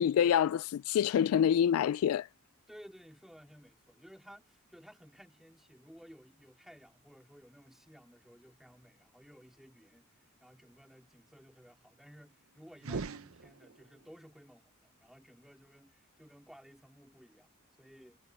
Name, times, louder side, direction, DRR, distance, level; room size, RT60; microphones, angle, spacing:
voice 1, 0.0-2.3, left 9 dB, 75° left, 0.3 m, -26 dB
voice 2, 2.7-18.2, equal, ahead, 2.3 m, -56 dB
sound 1, 12.7-14.1, right 4 dB, 70° right, 0.8 m, -41 dB
head